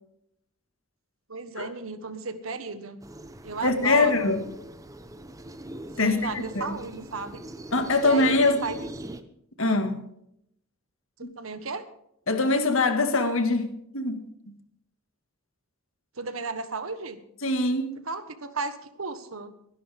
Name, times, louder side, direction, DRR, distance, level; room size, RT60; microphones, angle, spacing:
voice 1, 1.3-3.0 3.4-4.3 6.0-7.4 8.0-8.9 11.4-11.9 16.1-17.2 18.0-19.5, right 4 dB, 85° right, 1.5 m, -34 dB
sound 1, 3.0-9.2, right 1 dB, 15° right, 0.9 m, -42 dB
voice 2, 3.6-4.4 6.0-6.7 7.7-8.6 9.6-10.0 11.2-11.3 12.3-13.7 13.9-14.5 17.4-18.0, left 2 dB, 70° left, 2.0 m, -23 dB
23.5 x 11.0 x 3.6 m
head